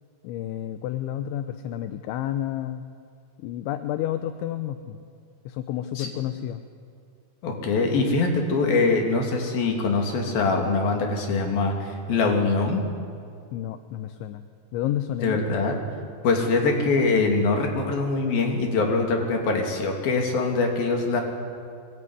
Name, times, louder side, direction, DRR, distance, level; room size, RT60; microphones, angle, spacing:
voice 1, 0.2-2.8 3.4-5.0 5.5-6.6 13.5-14.4 14.7-15.4, left 12 dB, 80° left, 9 dB, 3.1 m, -30 dB
voice 2, 7.4-12.8 15.2-15.8 16.2-21.2, left 3 dB, 55° left, 2 dB, 4.4 m, -23 dB
23.0 x 22.0 x 9.7 m, 2.3 s
omnidirectional pair, 5.5 m